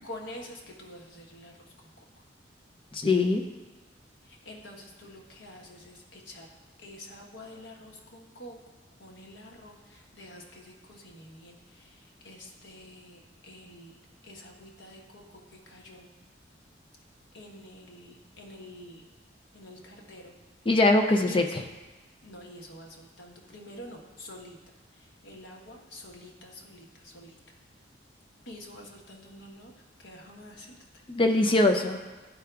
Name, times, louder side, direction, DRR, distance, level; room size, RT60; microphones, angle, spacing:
voice 1, 0.0-1.5 1.8-2.0 4.2-6.5 6.8-8.6 9.0-14.0 14.2-16.1 17.3-19.0 19.5-20.3 21.3-21.6 22.2-24.6 24.9-27.4 28.4-29.7 30.0-30.8 31.3-31.5, left 1 dB, 80° left, 0 dB, 1.1 m, -47 dB
voice 2, 2.9-3.4 20.7-21.4 31.1-32.0, left 2 dB, 25° left, 4 dB, 0.4 m, -22 dB
11.5 x 4.8 x 2.3 m, 1.2 s
head